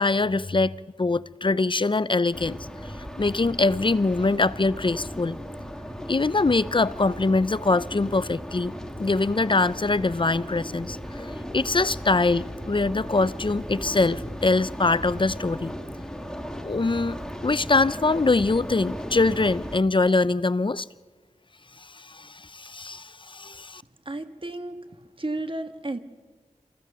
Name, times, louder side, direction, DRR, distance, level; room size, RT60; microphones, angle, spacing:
voice 1, 0.0-2.6 3.2-5.4 6.1-8.7 9.0-15.7 16.6-20.8 22.0-23.8, left 3 dB, 35° left, 0.6 m, -23 dB
sound 1, 2.3-19.8, equal, 5° left, 1.7 m, -36 dB
voice 2, 24.0-26.0, right 2 dB, 40° right, 1.7 m, -33 dB
27.5 x 14.5 x 6.8 m
wide cardioid pair, 60°, 14 cm